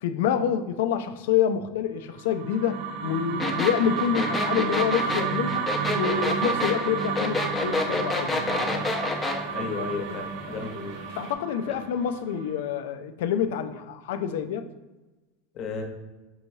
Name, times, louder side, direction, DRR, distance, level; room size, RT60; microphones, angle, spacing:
voice 1, 0.0-8.9 9.5-10.2 11.2-14.7, left 8 dB, 80° left, 9 dB, 0.3 m, -27 dB
sound 1, 2.2-12.5, right 6 dB, 60° right, 0.4 m, -31 dB
sound 2, 3.4-9.4, left 3 dB, 15° left, 0.7 m, -28 dB
sound 3, 5.0-11.3, right 2 dB, 85° right, 0.8 m, -45 dB
voice 2, 9.4-11.0 15.5-15.8, left 4 dB, 45° left, 3 dB, 0.9 m, -34 dB
5.4 x 3.0 x 2.7 m, 1.1 s
supercardioid pair, 125°, 0 cm